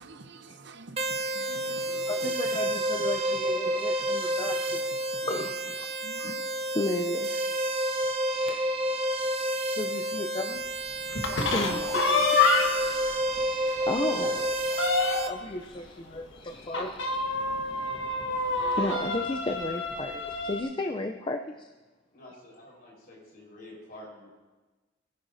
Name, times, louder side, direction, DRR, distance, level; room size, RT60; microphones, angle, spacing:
voice 1, 0.0-2.7 3.1-5.3 6.0-6.5, right 3 dB, 65° right, 0.7 m, -49 dB
sound 1, 1.0-15.3, right 1 dB, 35° right, 0.7 m, -30 dB
voice 2, 2.1-4.8 5.2-6.3 6.7-7.8 8.4-8.7 9.7-10.6 11.5-12.4 13.8-21.7, left 2 dB, 25° left, 0.4 m, -34 dB
sound 2, 11.1-12.9 13.4-13.5 13.8-13.9 14.3-15.5 16.7-20.6, left 3 dB, 75° left, 1.3 m, -27 dB
voice 3, 11.5-13.0 22.1-24.3, left 1 dB, 55° left, 4.5 m, -50 dB
19.5 x 10.5 x 2.7 m
head